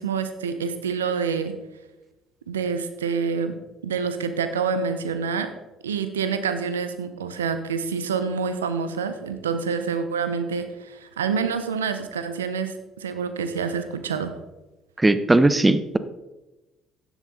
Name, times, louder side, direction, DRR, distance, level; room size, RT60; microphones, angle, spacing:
voice 1, 0.0-1.5 2.5-5.5 5.8-14.3, right 6 dB, 85° right, 10 dB, 1.0 m, -27 dB
voice 2, 15.0-16.0, right 2 dB, 15° right, 13 dB, 1.1 m, -18 dB
15.0 x 10.5 x 4.1 m, 1.1 s
hypercardioid pair, 55°, 0 cm